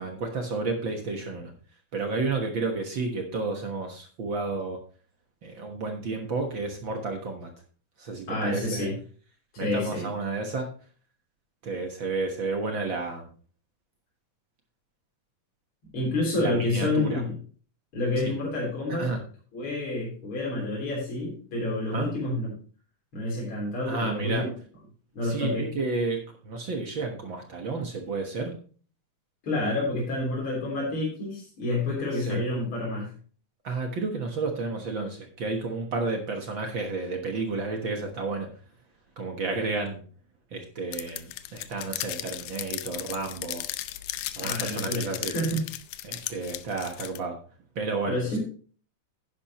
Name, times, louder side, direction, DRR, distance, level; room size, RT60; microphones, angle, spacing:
voice 1, 0.0-1.5 1.9-4.8 5.4-7.5 8.0-8.9 9.6-10.7 11.6-13.3 16.4-17.2 18.2-18.3 18.9-19.2 21.9-22.1 23.9-24.5 25.2-28.5 32.1-32.4 33.6-38.5 39.2-40.0 40.5-43.6 44.3-45.3 46.0-47.4 47.7-48.4, right 3 dB, 50° right, 3 dB, 1.6 m, -31 dB
voice 2, 8.3-9.0 9.5-10.1 15.9-17.3 17.9-19.1 19.5-22.5 23.1-24.5 25.1-25.7 29.4-33.1 44.4-45.6 46.2-46.3 48.1-48.4, left 2 dB, 40° left, -5 dB, 4.4 m, -29 dB
sound 1, 40.9-47.2, left 15 dB, 90° left, 2.2 m, -35 dB
10.5 x 10.0 x 3.0 m, 0.41 s
omnidirectional pair, 3.5 m